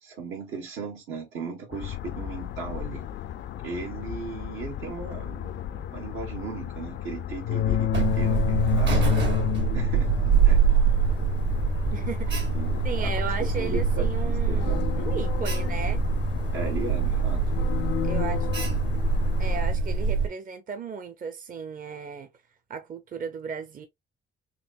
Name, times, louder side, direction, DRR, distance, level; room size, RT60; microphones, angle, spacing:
voice 1, 0.0-3.1 3.6-5.6 5.9-9.0 9.7-10.1 10.4-10.6 12.5-13.1 13.4-14.9 16.5-17.5, right 4 dB, 85° right, 1.5 m, -37 dB
sound 1, 1.7-19.6, left 10 dB, 65° left, 0.4 m, -31 dB
voice 2, 5.5-5.9 11.9-12.5 12.8-16.0 18.0-18.5 19.4-22.3 22.7-23.9, right 6 dB, 45° right, 0.7 m, -35 dB
Alarm, 7.9-20.3, right 5 dB, 65° right, 1.6 m, -24 dB
4.0 x 2.9 x 2.4 m
cardioid pair, 90°, 20 cm